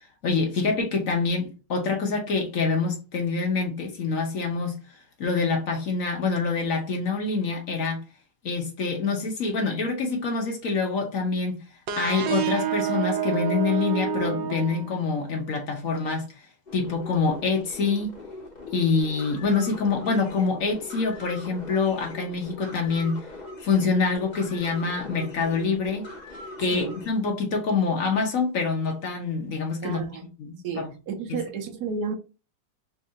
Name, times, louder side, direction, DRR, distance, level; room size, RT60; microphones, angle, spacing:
voice 1, 0.2-4.8 5.2-8.0 8.4-11.6 12.0-16.3 16.7-18.2 18.7-23.3 23.6-26.1 26.6-30.0 30.4-30.9, left 4 dB, 55° left, 1.2 m, -26 dB
sound 1, 11.9-15.4, right 7 dB, 90° right, 1.3 m, -28 dB
sound 2, 16.7-27.1, left 2 dB, 35° left, 0.7 m, -41 dB
voice 2, 26.6-27.0 29.8-30.2 30.6-32.1, right 5 dB, 70° right, 1.2 m, -32 dB
3.6 x 2.5 x 4.3 m
omnidirectional pair, 1.8 m